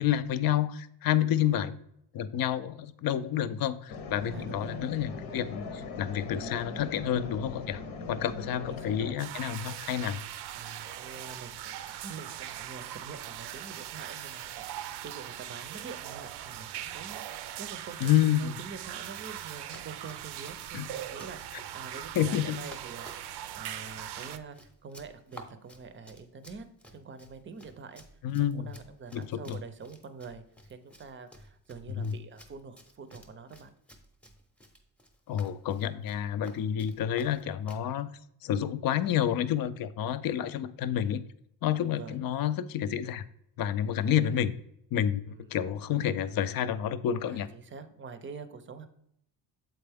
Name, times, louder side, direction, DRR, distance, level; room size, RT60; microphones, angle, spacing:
voice 1, 0.0-1.8 2.1-7.8 8.1-10.2 18.0-18.5 20.7-20.9 22.2-22.6 28.2-28.7 29.1-29.6 32.0-32.1 35.3-38.1 38.4-41.2 41.6-43.2 43.6-44.5 44.9-47.5, left 10 dB, 60° left, 14 dB, 0.5 m, -29 dB
sound 1, 3.9-9.1, left 4 dB, 90° left, 1.1 m, -40 dB
voice 2, 4.2-4.8 8.2-9.2 10.5-24.6 24.8-26.7 26.9-28.0 28.5-33.7 41.9-42.2 44.0-44.4 45.3-45.6 47.3-48.9, right 5 dB, 30° right, 10 dB, 0.5 m, -46 dB
sound 2, 9.2-24.4, right 11 dB, 80° right, 0.5 m, -40 dB
Run, 19.3-37.9, equal, 5° left, 0.7 m, -54 dB
7.6 x 4.4 x 3.4 m, 0.75 s
cardioid pair, 160°, 40 cm